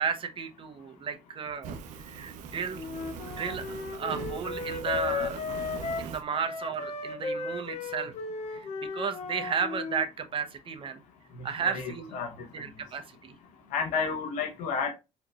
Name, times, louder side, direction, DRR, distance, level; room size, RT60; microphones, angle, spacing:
voice 1, 0.0-2.9 3.3-5.6 6.0-8.1 8.5-11.0 11.4-12.2 12.5-13.3, right 6 dB, 45° right, 0.8 m, -34 dB
Fire, 1.6-6.2, right 6 dB, 85° right, 0.6 m, -41 dB
Wind instrument woodwind instrument, 2.7-10.0, left 4 dB, 60° left, 0.7 m, -35 dB
voice 2, 11.3-12.5 13.7-14.9, left 5 dB, 90° left, 1.0 m, -31 dB
4.3 x 3.1 x 2.4 m
cardioid pair, 100°, 12 cm